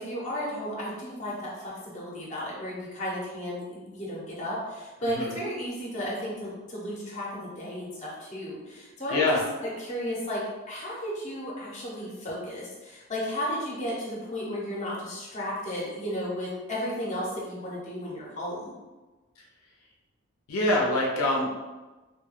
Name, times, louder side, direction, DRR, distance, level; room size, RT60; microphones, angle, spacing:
voice 1, 0.0-10.4 10.7-18.7, equal, 35° left, -5 dB, 0.7 m, -34 dB
voice 2, 9.1-9.4 20.5-21.5, left 1 dB, 90° left, -2 dB, 0.5 m, -24 dB
2.2 x 2.2 x 3.2 m, 1.2 s
head